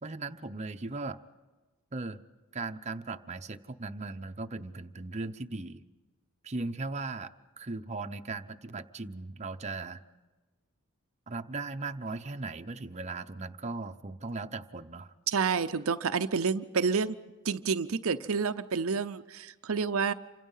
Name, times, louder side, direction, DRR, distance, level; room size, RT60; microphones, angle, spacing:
voice 1, 0.0-1.2 1.9-2.2 2.5-5.8 6.4-10.0 11.3-15.1, right 3 dB, 30° right, 7 dB, 0.8 m, -38 dB
voice 2, 15.3-17.2 17.4-20.1, right 5 dB, 70° right, 9 dB, 0.7 m, -29 dB
28.0 x 25.5 x 5.6 m, 1.3 s
head